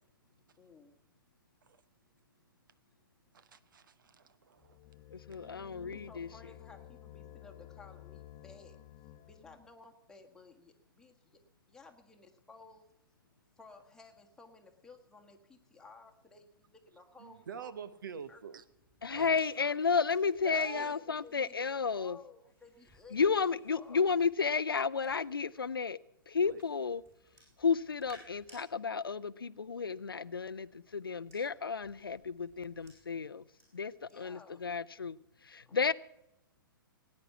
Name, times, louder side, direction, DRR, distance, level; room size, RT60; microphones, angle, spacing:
voice 1, 0.6-1.0 5.8-8.8 9.2-11.4 11.7-12.9 13.6-17.8 18.3-18.4 19.2-19.7 20.5-24.1 34.0-34.6 35.6-35.9, left 3 dB, 5° left, 1.6 m, -56 dB
voice 2, 3.3-4.8 5.4-5.5 17.2-18.6 19.1-19.4 20.4-21.0 26.4-26.6, right 7 dB, 65° right, 0.9 m, -46 dB
sound 1, 4.6-9.7, left 13 dB, 25° left, 0.9 m, -53 dB
voice 3, 5.1-6.3 19.0-22.2 23.1-26.0 26.3-27.0 27.6-33.4 33.7-35.2 35.5-35.9, left 5 dB, 80° left, 0.5 m, -32 dB
sound 2, 18.0-25.6 26.2-28.6 29.9-34.1 34.5-34.9, right 1 dB, 25° right, 7.7 m, -65 dB
18.5 x 9.7 x 5.8 m
figure-of-eight pair, 115°, 12 cm